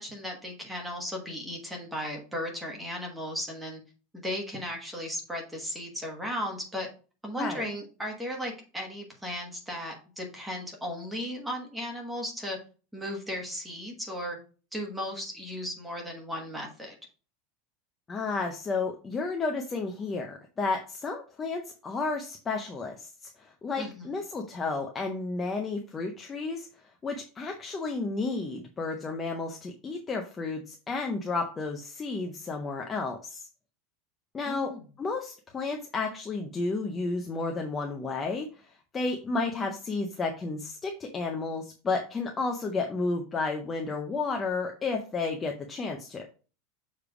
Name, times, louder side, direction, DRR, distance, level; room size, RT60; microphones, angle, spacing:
voice 1, 0.0-3.8 4.1-6.9 7.2-12.6 12.9-14.4 14.7-16.9 23.8-24.1 34.5-34.8, equal, 5° right, 0 dB, 1.3 m, -36 dB
voice 2, 18.1-26.7 27.0-33.5 34.3-34.7 35.0-46.2, left 3 dB, 15° left, 2 dB, 0.5 m, -32 dB
6.8 x 3.3 x 4.8 m, 0.36 s
supercardioid pair, 180°, 0 cm